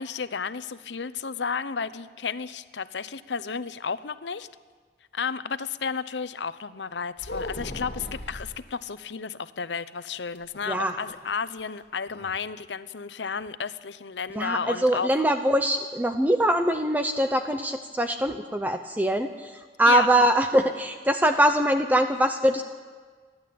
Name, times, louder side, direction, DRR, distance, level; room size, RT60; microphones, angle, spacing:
voice 1, 0.0-4.5 5.1-15.1 19.9-20.1, left 5 dB, 85° left, 14 dB, 0.8 m, -32 dB
sound 1, 7.2-8.6 10.3-11.3 11.6-11.7 12.1-12.3, left 1 dB, 70° left, 2.4 m, -37 dB
voice 2, 10.7-11.0 14.3-22.6, right 1 dB, 10° right, 7 dB, 0.7 m, -23 dB
29.0 x 11.5 x 8.6 m, 1.5 s
head